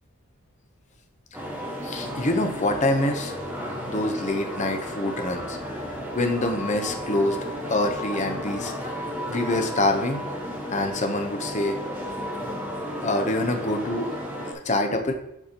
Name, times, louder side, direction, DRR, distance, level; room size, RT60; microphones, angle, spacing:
sound 1, 1.3-14.5, equal, 10° right, 1.4 m, -33 dB
voice 1, 1.8-3.4 3.9-5.6 6.1-7.4 7.7-8.7 9.3-10.2 10.7-11.8 13.0-14.1 14.4-15.1, left 2 dB, 30° left, 5 dB, 0.7 m, -25 dB
11.5 x 4.1 x 2.9 m, 0.81 s
head